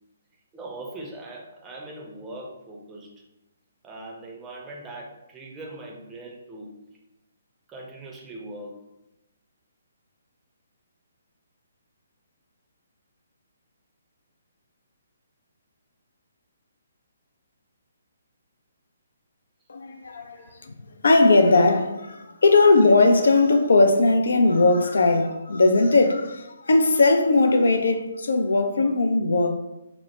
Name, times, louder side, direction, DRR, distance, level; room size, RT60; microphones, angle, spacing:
voice 1, 0.5-3.2 3.8-6.8 7.7-8.8 20.1-20.5, right 2 dB, 15° right, 0.5 m, -40 dB
voice 2, 19.7-20.7 21.0-29.6, left 3 dB, 65° left, 0.3 m, -19 dB
3.0 x 2.0 x 3.1 m
figure-of-eight pair, 135°, 0 cm